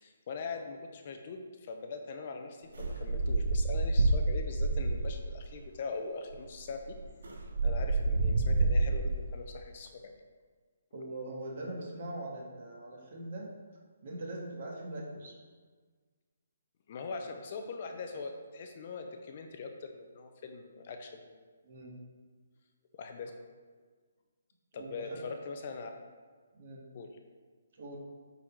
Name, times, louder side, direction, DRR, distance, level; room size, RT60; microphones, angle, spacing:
voice 1, 0.0-7.0 7.3-7.4 7.6-10.1 16.9-21.3 23.0-23.3 24.7-25.9 26.9-27.1, left 4 dB, 35° left, 4 dB, 0.6 m, -42 dB
sound 1, 2.7-5.3 6.3-6.4 6.7-9.3, right 2 dB, 85° right, 1.0 m, -28 dB
voice 2, 10.9-13.5 14.0-15.4 21.6-22.0 24.7-25.1 26.5-26.9 27.8-28.0, right 1 dB, 45° right, -2 dB, 1.8 m, -41 dB
8.6 x 4.1 x 4.6 m, 1.5 s
hypercardioid pair, 170°, 0 cm